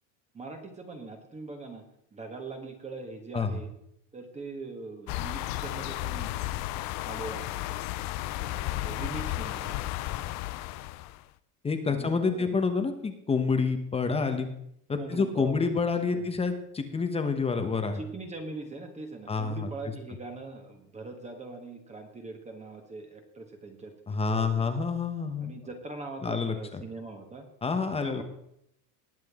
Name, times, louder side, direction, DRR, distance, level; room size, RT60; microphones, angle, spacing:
voice 1, 0.3-1.8 2.1-3.7 4.1-6.3 7.0-7.8 8.4-10.4 11.8-12.5 15.0-15.7 16.1-16.3 17.9-23.9 24.3-24.7 25.4-27.5 28.0-28.2, right 3 dB, 15° right, 4 dB, 1.3 m, -42 dB
sound 1, 5.1-11.2, left 16 dB, 40° left, 0.5 m, -33 dB
voice 2, 11.6-14.5 14.9-18.0 19.3-19.7 24.1-25.5 26.2-26.8 27.6-28.2, left 4 dB, 15° left, 7 dB, 1.0 m, -28 dB
19.5 x 7.6 x 3.6 m, 0.76 s
supercardioid pair, 150°, 45 cm